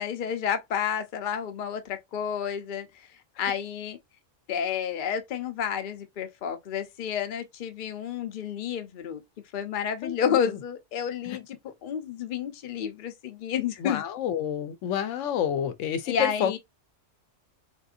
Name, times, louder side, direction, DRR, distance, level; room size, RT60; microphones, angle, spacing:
voice 1, 0.0-3.1 3.4-4.0 4.5-9.2 9.5-14.0 16.1-16.6, left 8 dB, 50° left, 0.7 m, -30 dB
voice 2, 10.0-10.5 11.2-11.4 13.8-16.6, left 9 dB, 90° left, 0.9 m, -29 dB
3.5 x 2.6 x 2.4 m
omnidirectional pair, 1.3 m